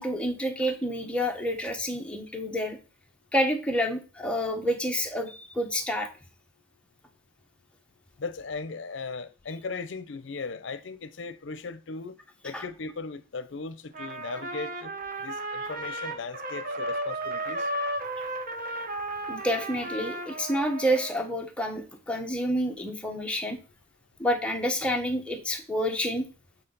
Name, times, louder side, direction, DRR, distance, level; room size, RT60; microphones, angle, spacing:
voice 1, 0.0-2.8 3.3-6.1 12.5-12.6 19.3-23.6 24.2-26.2, equal, 5° left, 1.1 m, -28 dB
voice 2, 8.2-12.1 12.4-14.9 15.2-17.7, left 4 dB, 70° left, 0.6 m, -37 dB
Trumpet, 13.9-21.3, right 1 dB, 50° right, 0.9 m, -34 dB
7.8 x 4.0 x 4.0 m
head